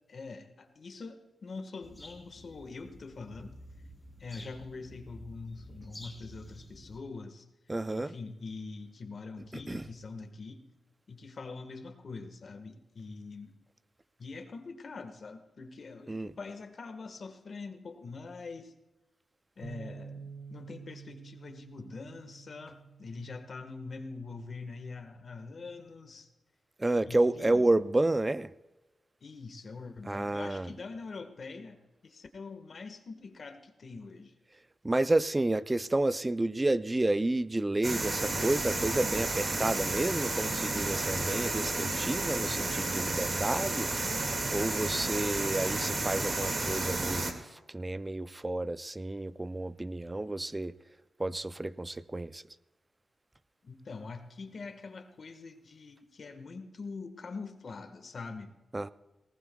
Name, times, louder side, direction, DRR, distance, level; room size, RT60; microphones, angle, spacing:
voice 1, 0.1-3.6 4.2-7.4 7.9-10.6 11.1-13.5 14.2-18.7 19.6-26.3 27.1-27.6 29.2-34.3 45.0-45.3 53.6-58.5, left 4 dB, 55° left, 1.5 m, -44 dB
sound 1, 1.8-7.0, equal, 5° left, 4.0 m, -51 dB
voice 2, 7.7-8.1 9.7-9.9 16.1-16.3 26.8-28.5 30.1-30.7 34.8-43.9 44.5-50.7 51.2-52.4 58.7-58.9, right 2 dB, 20° right, 0.5 m, -30 dB
Bass guitar, 19.6-25.9, right 5 dB, 75° right, 3.5 m, -50 dB
sound 2, 37.8-47.3, right 2 dB, 45° right, 2.1 m, -32 dB
19.0 x 18.5 x 2.3 m
wide cardioid pair, 95°, 0 cm